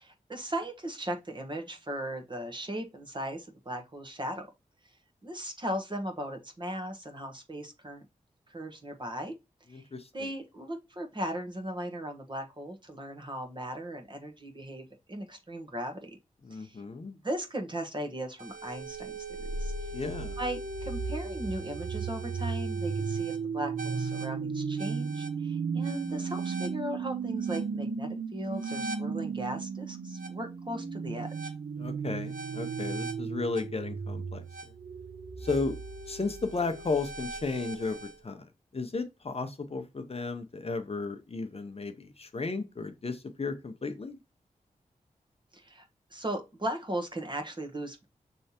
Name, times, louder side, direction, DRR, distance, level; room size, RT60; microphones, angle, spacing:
voice 1, 0.0-4.5 5.2-8.0 8.5-9.3 9.7-9.8 10.1-16.2 16.5-16.8 17.2-19.9 20.4-31.5 45.5-48.0, right 1 dB, 35° right, 1.2 m, -37 dB
voice 2, 9.7-10.1 16.4-17.2 19.9-20.4 31.8-34.7 35.4-35.8 36.1-44.2, left 3 dB, 45° left, 0.8 m, -34 dB
sound 1, 18.4-38.1, right 5 dB, 70° right, 0.7 m, -35 dB
5.4 x 3.3 x 2.8 m
cardioid pair, 45°, 15 cm